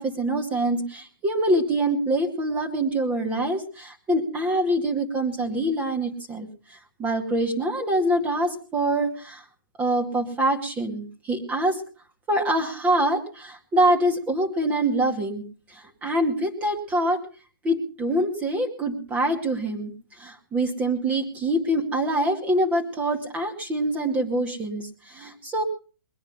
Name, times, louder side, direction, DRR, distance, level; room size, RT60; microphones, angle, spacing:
voice 1, 0.0-9.4 9.8-11.8 12.3-15.4 15.7-17.2 17.6-25.6, right 1 dB, 10° right, 3 dB, 2.2 m, -25 dB
21.0 x 10.0 x 5.5 m, 0.39 s
hypercardioid pair, 165°, 12 cm